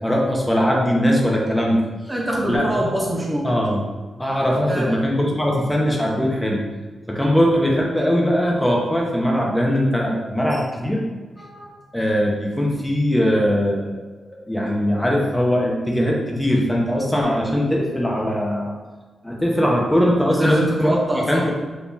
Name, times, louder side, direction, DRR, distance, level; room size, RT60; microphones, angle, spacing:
voice 1, 0.0-1.8 2.5-2.8 3.4-3.8 4.2-6.6 7.1-11.0 11.4-13.9 14.3-18.8 19.2-21.0 21.3-21.5, equal, 10° left, -2 dB, 0.8 m, -20 dB
voice 2, 2.1-3.5 4.7-5.0 20.4-21.4, right 1 dB, 20° right, -2 dB, 0.7 m, -24 dB
3.8 x 2.8 x 2.6 m, 1.3 s
supercardioid pair, 45°, 0 cm